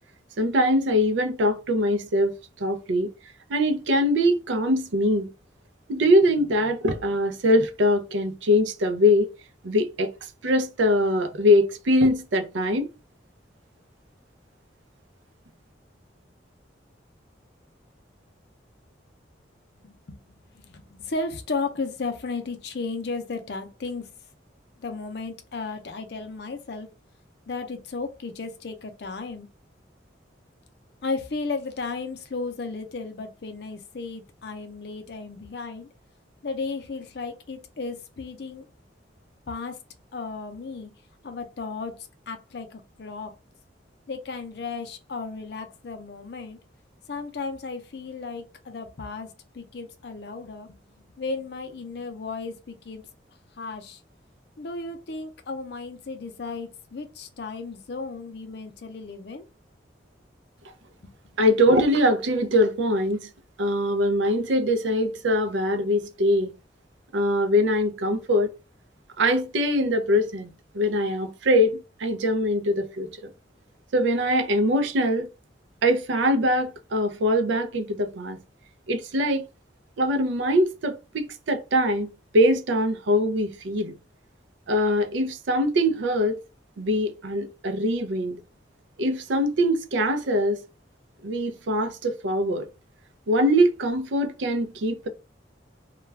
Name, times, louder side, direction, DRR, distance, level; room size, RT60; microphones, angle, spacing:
voice 1, 0.4-3.1 3.5-5.3 5.9-9.3 9.6-10.1 10.4-12.9 61.4-63.3 63.6-66.5 67.1-68.5 69.2-70.5 70.7-73.3 73.9-75.3 75.8-78.4 78.9-79.4 80.0-82.1 82.3-83.9 84.7-86.4 86.8-88.4 89.0-90.6 91.2-92.7 93.3-95.1, equal, 80° right, 0.5 m, -22 dB
voice 2, 19.8-20.2 20.5-24.1 24.8-26.9 27.5-29.5 31.0-35.9 36.4-38.7 39.5-39.8 40.1-40.9 41.2-43.3 44.1-46.6 47.1-53.0 53.6-54.0 54.6-59.4 61.0-61.3, left 4 dB, 60° left, 0.5 m, -34 dB
2.3 x 2.2 x 3.2 m
head